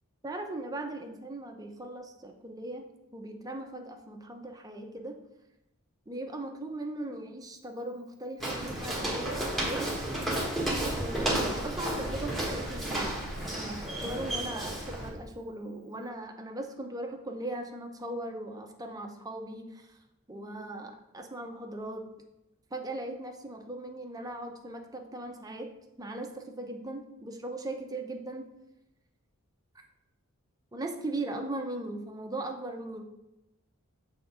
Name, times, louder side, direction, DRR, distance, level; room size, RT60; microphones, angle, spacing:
voice 1, 0.2-5.2 6.1-9.9 11.0-13.2 13.6-19.9 20.3-22.1 22.7-25.7 26.0-28.5 29.7-29.8 30.7-33.0, right 1 dB, 15° right, 3 dB, 0.6 m, -39 dB
Walk footsteps, 8.4-15.1, right 1 dB, ahead, 1.3 m, -32 dB
6.8 x 3.5 x 4.9 m, 0.91 s
head